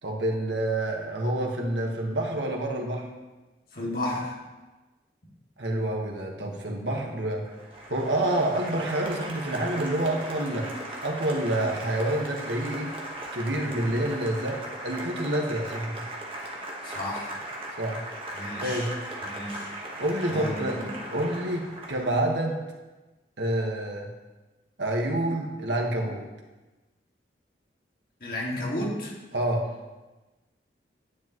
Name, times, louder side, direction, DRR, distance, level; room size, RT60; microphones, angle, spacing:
voice 1, 0.0-3.1 5.6-7.4 7.9-10.7 11.0-12.9 13.3-16.0 17.8-18.0 18.6-18.9 20.0-20.8 21.1-22.6 23.4-24.1 24.8-26.2 29.3-29.6, right 1 dB, 80° right, 1 dB, 1.5 m, -28 dB
voice 2, 3.7-4.4 16.8-17.4 18.3-18.9 19.3-19.7 20.3-20.6 28.2-29.1, left 1 dB, 55° left, -4 dB, 2.3 m, -32 dB
Applause, 7.4-22.3, right 1 dB, 30° right, 1.4 m, -38 dB
10.0 x 10.0 x 3.1 m, 1.2 s
head